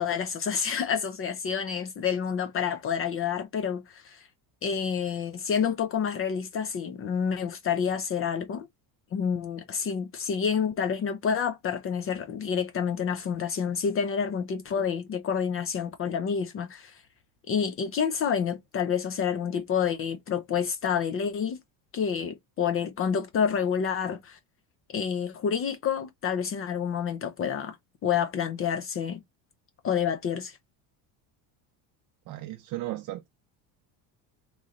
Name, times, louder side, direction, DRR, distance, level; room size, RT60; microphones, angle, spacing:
voice 1, 0.0-4.3 4.6-8.7 9.1-17.0 17.5-21.6 21.9-24.4 24.9-27.8 28.0-29.2 29.8-30.6, left 7 dB, 35° left, 0.5 m, -28 dB
voice 2, 32.3-33.3, right 16 dB, 50° right, 0.6 m, -35 dB
3.7 x 3.1 x 4.0 m
cardioid pair, 165°, 42 cm